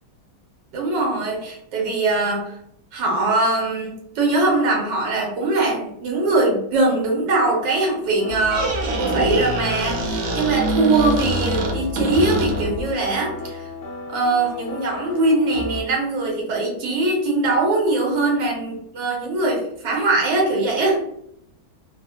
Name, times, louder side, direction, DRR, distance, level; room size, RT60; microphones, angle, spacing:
voice 1, 0.7-2.5 2.9-13.6 14.1-21.0, right 2 dB, 90° right, -1 dB, 1.5 m, -21 dB
sound 1, 8.2-15.8, left 2 dB, 75° left, 0.6 m, -34 dB
Squeak, 8.3-12.9, right 2 dB, 70° right, 1.1 m, -25 dB
3.1 x 2.1 x 2.7 m, 0.74 s
omnidirectional pair, 1.9 m